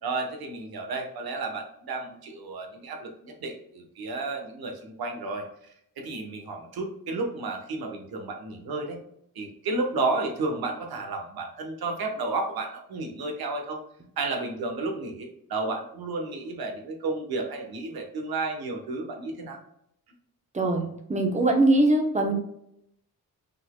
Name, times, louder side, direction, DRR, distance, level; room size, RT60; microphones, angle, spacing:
voice 1, 0.0-5.4 6.0-9.0 9.3-13.8 14.2-19.6, right 3 dB, 85° right, 3 dB, 1.1 m, -32 dB
voice 2, 20.5-22.3, right 2 dB, 20° right, 2 dB, 0.9 m, -22 dB
5.4 x 4.0 x 2.2 m, 0.75 s
wide cardioid pair, 145°, 36 cm